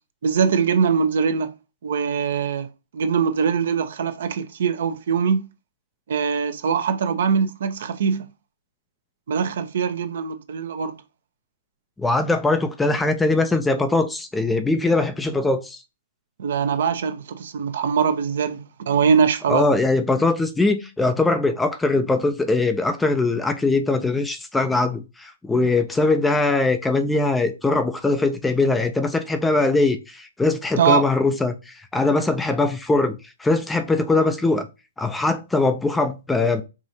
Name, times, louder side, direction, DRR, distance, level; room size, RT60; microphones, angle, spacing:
voice 1, 0.2-1.5 1.8-2.7 2.9-5.5 6.1-8.2 9.3-11.0 16.4-18.6 18.9-19.8 30.8-31.0, right 6 dB, 65° right, 0.7 m, -22 dB
voice 2, 12.0-15.8 19.5-34.7 35.0-36.6, left 3 dB, 5° left, 0.4 m, -21 dB
4.9 x 2.6 x 2.8 m
hypercardioid pair, 135°, 0 cm